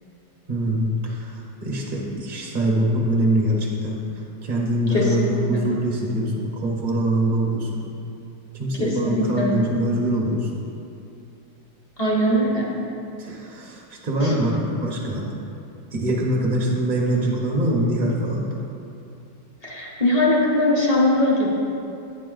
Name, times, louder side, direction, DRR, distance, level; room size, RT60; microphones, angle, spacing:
voice 1, 0.5-7.8 8.5-10.5 13.2-15.2 15.9-18.5, right 1 dB, 45° right, -3 dB, 0.7 m, -23 dB
voice 2, 4.9-5.7 8.8-9.6 12.0-12.7 14.2-14.3 19.6-21.5, left 1 dB, 30° left, -4 dB, 0.9 m, -21 dB
8.6 x 6.7 x 3.8 m, 2.7 s
omnidirectional pair, 2.0 m